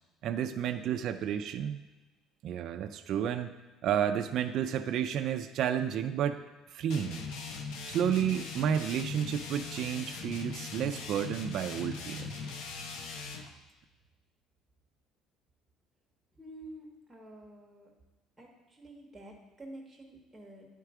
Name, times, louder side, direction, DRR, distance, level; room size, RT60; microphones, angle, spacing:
voice 1, 0.2-1.8 2.4-3.5 3.8-6.4 6.7-7.3 7.9-12.3, right 9 dB, 45° right, 6 dB, 0.3 m, -31 dB
sound 1, 6.9-13.5, left 5 dB, 65° left, 0.8 m, -40 dB
voice 2, 16.4-17.9 18.4-20.7, right 1 dB, 5° right, -2 dB, 1.2 m, -49 dB
9.8 x 4.5 x 4.8 m, 1.2 s
cardioid pair, 180°, 0 cm